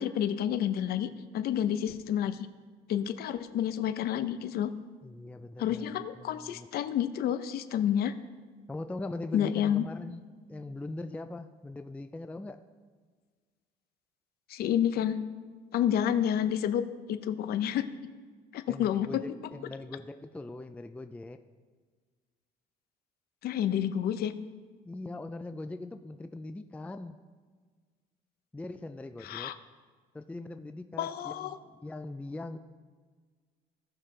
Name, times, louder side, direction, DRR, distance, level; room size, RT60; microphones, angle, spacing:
voice 1, 0.0-2.5 2.9-4.7 5.6-8.1 9.3-9.9 14.5-15.2 15.7-17.9 18.5-19.2 23.4-24.3 29.2-29.5 31.0-31.6, left 10 dB, 65° left, 11 dB, 0.6 m, -29 dB
voice 2, 5.0-6.7 8.7-10.2 10.5-12.6 18.7-21.4 24.8-27.2 28.5-29.5 30.1-32.6, left 2 dB, 10° left, 9 dB, 0.4 m, -41 dB
17.0 x 5.9 x 3.3 m, 1.5 s
cardioid pair, 110°, 17 cm